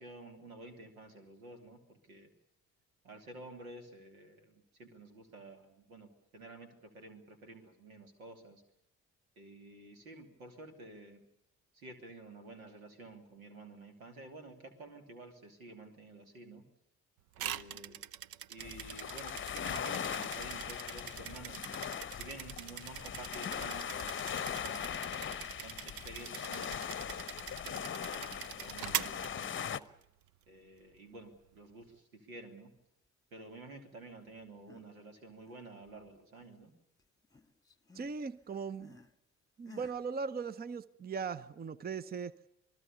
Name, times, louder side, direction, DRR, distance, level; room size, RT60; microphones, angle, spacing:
voice 1, 0.0-2.3 3.0-8.6 9.4-11.2 11.7-16.6 17.4-18.0 18.5-21.6 22.1-24.9 25.6-29.9 30.5-32.7 33.3-36.7, right 2 dB, 80° right, 2.9 m, -51 dB
sound 1, 17.4-30.0, right 12 dB, 55° right, 0.9 m, -43 dB
sound 2, 18.6-29.8, left 8 dB, 30° left, 1.0 m, -40 dB
sound 3, 34.4-35.0 35.3-36.7 37.0-39.2 39.6-40.0, left 3 dB, 10° left, 2.0 m, -58 dB
voice 2, 37.9-39.0 39.6-42.4, right 5 dB, 20° right, 0.8 m, -39 dB
27.5 x 20.0 x 6.9 m
figure-of-eight pair, 45°, 42 cm